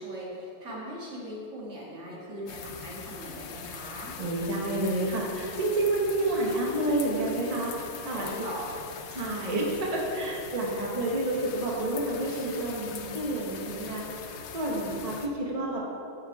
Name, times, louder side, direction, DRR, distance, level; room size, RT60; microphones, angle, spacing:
voice 1, 0.0-4.2 8.1-8.6, equal, 75° right, -5 dB, 2.3 m, -39 dB
sound 1, 2.5-15.3, left 6 dB, 65° left, 0.9 m, -42 dB
voice 2, 4.2-7.7 8.0-8.3 9.1-14.0 14.5-15.8, right 1 dB, 30° right, -2 dB, 1.2 m, -29 dB
10.0 x 6.5 x 4.8 m, 2.8 s
omnidirectional pair, 1.3 m